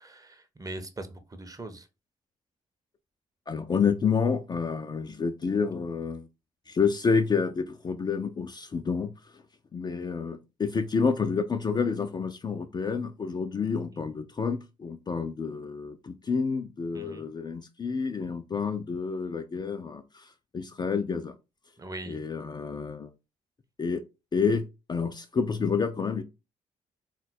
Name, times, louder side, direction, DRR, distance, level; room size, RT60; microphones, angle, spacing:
voice 1, 0.0-1.9 16.9-17.3 21.8-22.2, right 2 dB, 20° right, 0.7 m, -41 dB
voice 2, 3.5-6.3 6.7-9.4 9.7-21.3 22.1-23.1 23.8-24.0 24.3-26.2, left 5 dB, 25° left, 0.4 m, -29 dB
3.8 x 2.2 x 4.1 m
figure-of-eight pair, 40°, 17 cm